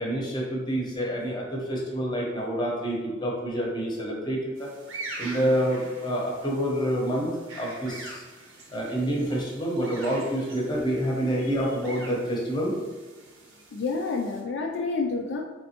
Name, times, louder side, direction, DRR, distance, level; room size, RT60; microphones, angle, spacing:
voice 1, 0.0-4.7 5.2-8.2 8.7-12.8, equal, 20° left, -2 dB, 0.8 m, -28 dB
sound 1, 4.5-14.4, right 2 dB, 80° right, 0.9 m, -44 dB
voice 2, 13.7-15.4, left 4 dB, 60° left, 1 dB, 0.3 m, -29 dB
4.2 x 3.3 x 2.8 m, 1.3 s
head